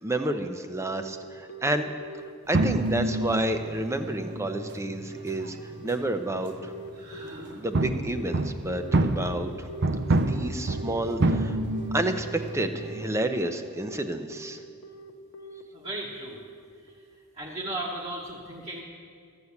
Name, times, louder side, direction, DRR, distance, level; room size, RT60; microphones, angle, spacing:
voice 1, 0.0-1.9 2.5-5.6 5.8-6.7 7.6-9.7 10.1-11.6 11.9-14.6, right 1 dB, 15° right, 8 dB, 0.6 m, -30 dB
Telephone, 1.0-17.2, right 2 dB, 65° left, 0.7 m, -42 dB
sound 1, 2.5-6.9 7.1-13.2, right 2 dB, 55° right, 0.6 m, -28 dB
voice 2, 6.9-7.6 15.7-16.4 16.8-17.0 17.3-18.8, right 1 dB, 30° right, -4 dB, 1.1 m, -36 dB
14.0 x 8.1 x 7.1 m, 2.2 s
head